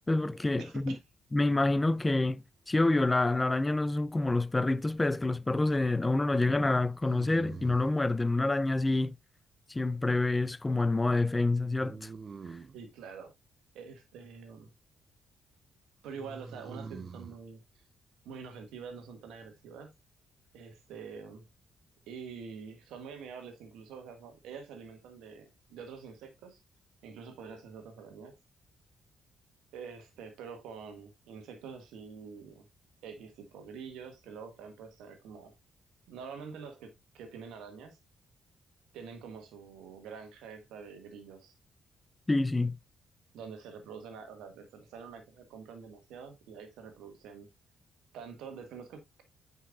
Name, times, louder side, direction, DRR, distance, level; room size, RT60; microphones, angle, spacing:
voice 1, 0.1-1.0 1.3-9.2 9.7-12.1 42.3-42.8, left 2 dB, 20° left, 0.5 m, -27 dB
voice 2, 0.6-1.0 12.7-13.3 13.7-14.7 16.0-17.6 18.3-19.9 20.5-21.4 22.1-26.6 27.0-28.4 29.7-32.7 33.0-35.6 36.1-38.0 38.9-41.5 43.3-47.5 48.1-49.2, right 6 dB, 75° right, 1.6 m, -46 dB
sound 1, 4.5-5.0 7.0-8.0 11.8-12.8 16.1-17.4, right 5 dB, 45° right, 0.5 m, -45 dB
8.3 x 5.5 x 2.4 m
hypercardioid pair, 45°, 0 cm